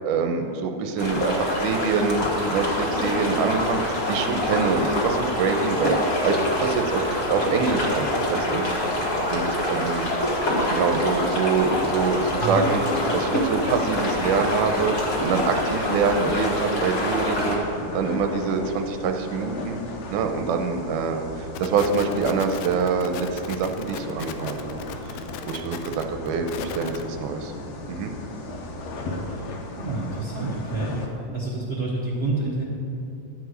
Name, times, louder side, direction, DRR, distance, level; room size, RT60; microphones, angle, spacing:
voice 1, 0.0-8.6 9.3-10.1 10.7-12.8 13.1-17.6 17.9-19.8 20.1-25.2 25.5-27.5 27.9-28.1, right 5 dB, 90° right, 5 dB, 2.2 m, -25 dB
sound 1, 1.0-17.5, left 1 dB, 40° left, 1.2 m, -25 dB
sound 2, 11.5-31.1, left 2 dB, 65° left, 2.0 m, -36 dB
voice 2, 12.4-12.7 29.8-32.6, right 3 dB, 50° right, -6 dB, 1.1 m, -28 dB
sound 3, 21.5-27.1, left 9 dB, 85° left, 2.2 m, -37 dB
12.0 x 4.8 x 7.9 m, 2.7 s
omnidirectional pair, 3.7 m